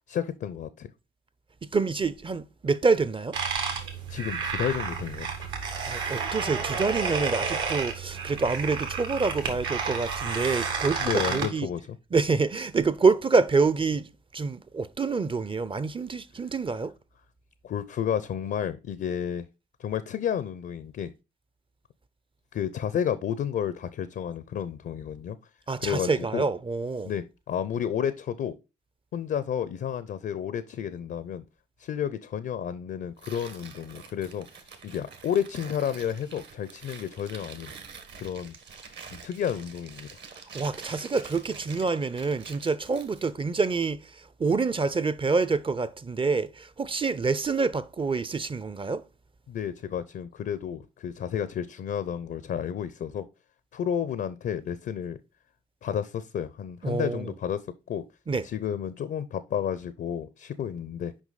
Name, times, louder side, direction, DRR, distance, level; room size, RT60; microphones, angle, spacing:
voice 1, 0.1-0.9 4.1-5.3 11.0-11.9 17.6-19.4 19.8-21.1 22.5-25.4 25.8-26.4 27.0-28.5 29.1-31.5 31.8-34.5 34.8-37.7 38.2-38.6 39.1-40.1 49.5-53.3 53.7-55.2 55.8-58.0 58.4-61.1, left 8 dB, 50° left, 0.6 m, -31 dB
voice 2, 1.6-3.4 5.9-11.7 12.1-16.9 25.7-27.1 40.5-49.0 56.8-57.3 58.3-58.4, right 4 dB, 25° right, 0.6 m, -27 dB
sound 1, 3.3-11.5, right 5 dB, 70° right, 1.8 m, -31 dB
Tearing, 33.2-43.4, right 5 dB, 55° right, 1.5 m, -46 dB
6.2 x 5.1 x 4.0 m
hypercardioid pair, 45°, 21 cm